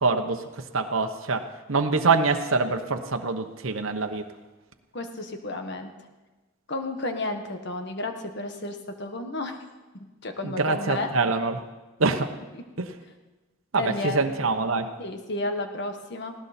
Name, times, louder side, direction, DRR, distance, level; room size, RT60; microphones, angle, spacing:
voice 1, 0.0-0.4 0.7-4.2 10.4-11.6 12.0-12.3 12.8-12.9 13.7-14.9, right 4 dB, 75° right, 5 dB, 1.0 m, -25 dB
voice 2, 4.9-5.9 6.7-9.6 9.9-11.1 12.5-12.6 13.8-14.2 15.0-16.3, left 2 dB, 55° left, 6 dB, 1.6 m, -32 dB
19.0 x 17.0 x 4.4 m, 1.2 s
head